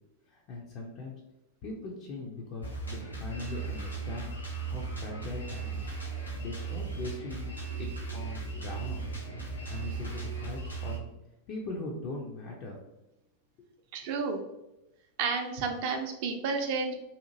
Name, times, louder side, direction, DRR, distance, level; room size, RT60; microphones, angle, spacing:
voice 1, 0.3-1.1 1.6-4.3 4.7-5.9 6.4-7.5 7.8-9.0 9.7-11.1 11.5-12.8 13.6-13.7, left 2 dB, 40° left, -2 dB, 0.4 m, -40 dB
Drum kit, 2.6-11.0, right 4 dB, 85° left, 0.7 m, -37 dB
voice 2, 13.9-14.4 15.2-16.9, right 4 dB, 45° right, 4 dB, 0.4 m, -31 dB
2.7 x 2.4 x 2.6 m, 0.92 s
figure-of-eight pair, 90°, 0 cm